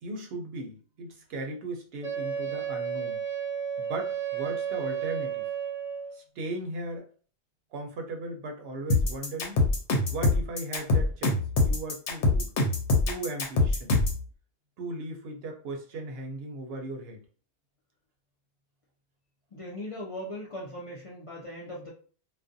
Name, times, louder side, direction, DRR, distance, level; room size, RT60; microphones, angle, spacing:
voice 1, 0.0-3.2 3.8-5.5 6.1-7.1 7.7-9.6 10.1-12.5 13.1-14.0 14.8-17.2, right 2 dB, 65° right, 3 dB, 0.7 m, -37 dB
Wind instrument woodwind instrument, 2.0-6.2, right 8 dB, 5° right, 0.8 m, -32 dB
sound 1, 8.9-14.2, left 2 dB, 85° left, 0.9 m, -24 dB
voice 2, 19.5-21.9, left 1 dB, 55° left, -4 dB, 0.3 m, -39 dB
2.4 x 2.1 x 2.5 m, 0.41 s
omnidirectional pair, 1.2 m